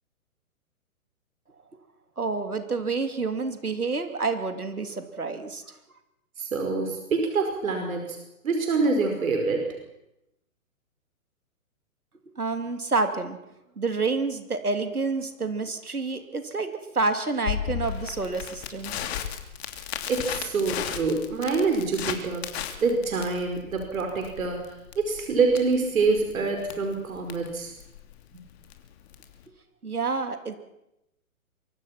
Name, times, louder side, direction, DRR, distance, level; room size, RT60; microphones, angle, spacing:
voice 1, 2.2-5.6 12.4-13.4 13.8-19.0 29.8-30.6, right 3 dB, 90° right, 7 dB, 3.1 m, -28 dB
voice 2, 6.4-8.2 8.4-9.7 20.1-22.5 22.8-24.6 25.0-27.7 28.3-28.4, right 4 dB, 70° right, 4 dB, 5.0 m, -26 dB
Crackle, 17.5-29.4, left 9 dB, 45° left, 2.9 m, -35 dB
24.5 x 24.0 x 6.0 m, 0.86 s
figure-of-eight pair, 125°, 43 cm